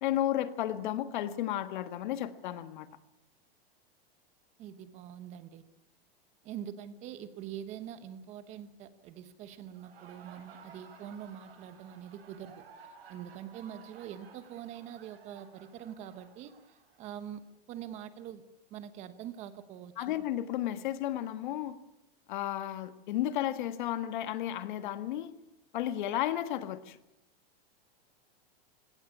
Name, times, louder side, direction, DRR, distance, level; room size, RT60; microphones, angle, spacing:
voice 1, 0.0-2.9 20.0-21.8 22.3-25.3 25.7-27.0, left 12 dB, 55° left, 12 dB, 1.5 m, -33 dB
voice 2, 4.6-5.6 6.4-17.4 17.7-18.4 18.7-20.2, right 10 dB, 25° right, 13 dB, 1.1 m, -44 dB
Laughter, 9.6-17.3, right 6 dB, 90° right, 6.6 m, -55 dB
20.5 x 17.5 x 9.8 m, 0.92 s
supercardioid pair, 175°, 29 cm